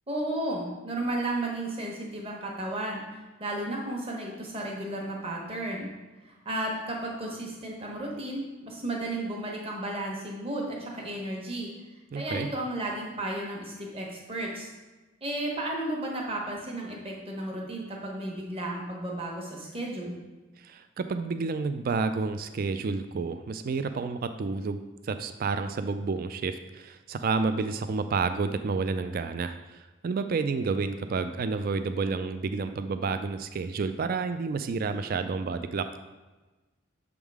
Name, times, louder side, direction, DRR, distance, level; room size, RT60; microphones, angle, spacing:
voice 1, 0.1-5.9 6.2-11.7 12.1-14.7 15.2-20.2, right 1 dB, 30° right, -1 dB, 1.1 m, -33 dB
voice 2, 12.1-12.5 20.6-35.9, right 4 dB, 45° right, 10 dB, 0.3 m, -30 dB
7.1 x 3.7 x 4.7 m, 1.2 s
head